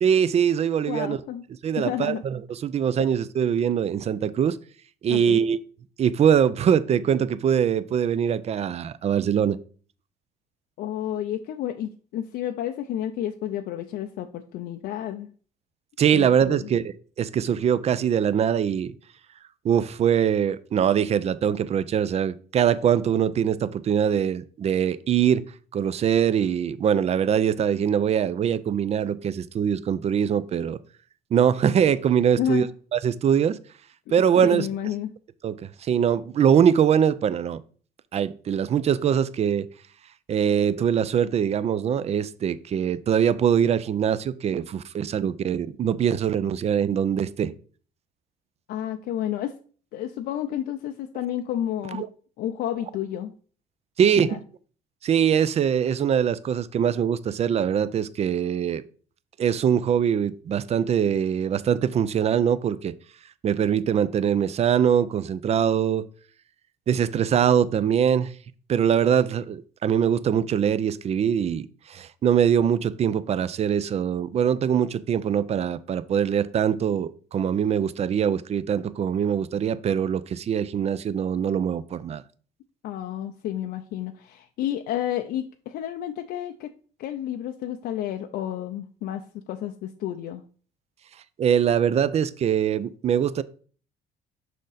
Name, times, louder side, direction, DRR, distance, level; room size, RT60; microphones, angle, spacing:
voice 1, 0.0-1.2 1.6-4.6 5.0-5.6 6.0-9.6 16.0-18.9 19.6-25.4 25.7-30.8 31.3-32.7 32.9-33.6 34.1-34.7 35.4-37.6 38.1-39.7 40.3-47.5 52.0-52.1 54.0-54.4 55.0-58.8 59.4-63.0 63.4-66.1 66.9-68.3 68.7-82.2 91.4-93.4, right 8 dB, 40° right, 0.4 m, -23 dB
voice 2, 0.8-1.4 1.8-2.2 5.1-5.4 10.8-15.3 16.1-16.7 32.3-32.7 34.4-35.1 48.7-49.5 49.9-52.0 52.4-53.3 54.2-54.4 82.8-86.7 87.0-89.2 89.5-90.4, left 11 dB, 70° left, 0.5 m, -30 dB
6.4 x 5.2 x 4.0 m
cardioid pair, 110°, 17 cm